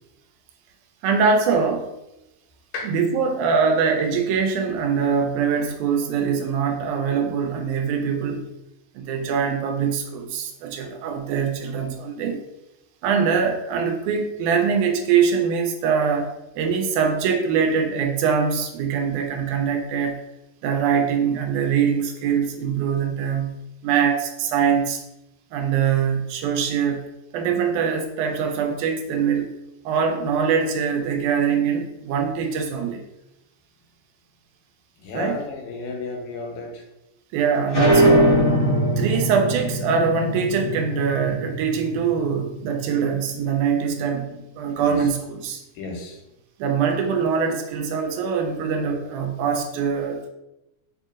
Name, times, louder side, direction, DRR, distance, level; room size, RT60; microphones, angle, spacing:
voice 1, 1.0-1.9 2.8-8.5 9.0-12.4 13.0-20.2 20.6-25.0 25.5-27.1 27.3-29.5 29.9-33.0 35.1-35.4 37.3-38.4 39.0-45.6 46.6-50.3, right 6 dB, 90° right, 3 dB, 2.0 m, -23 dB
voice 2, 35.0-36.8 44.7-45.0 45.8-46.2, left 3 dB, 85° left, 2 dB, 2.0 m, -33 dB
sound 1, 37.7-43.0, right 1 dB, 45° left, 1.2 m, -21 dB
4.6 x 2.8 x 2.4 m, 0.92 s
omnidirectional pair, 3.4 m